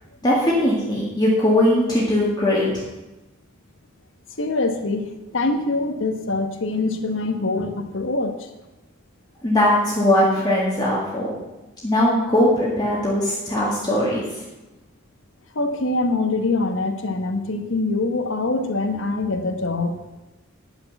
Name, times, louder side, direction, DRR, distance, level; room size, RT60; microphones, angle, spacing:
voice 1, 0.2-2.8 9.4-11.3 11.8-14.4, left 1 dB, 20° left, -5 dB, 1.8 m, -20 dB
voice 2, 4.4-8.5 15.5-19.9, left 2 dB, 70° left, 5 dB, 1.2 m, -24 dB
10.5 x 6.1 x 7.0 m, 1.0 s
head